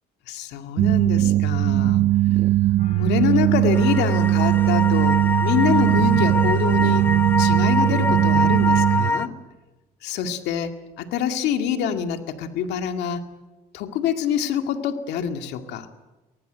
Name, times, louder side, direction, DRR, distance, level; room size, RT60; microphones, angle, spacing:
voice 1, 0.3-2.0 3.0-7.0 7.4-9.3 10.0-13.2 13.7-15.9, left 8 dB, 85° left, 6 dB, 2.2 m, -26 dB
sound 1, 0.8-9.1, right 15 dB, 65° right, 0.7 m, -19 dB
sound 2, 2.8-9.2, left 7 dB, 50° left, 3.0 m, -43 dB
sound 3, 3.7-9.3, left 2 dB, 10° left, 0.7 m, -25 dB
23.5 x 19.5 x 8.0 m, 1.1 s
cardioid pair, 110°, 17 cm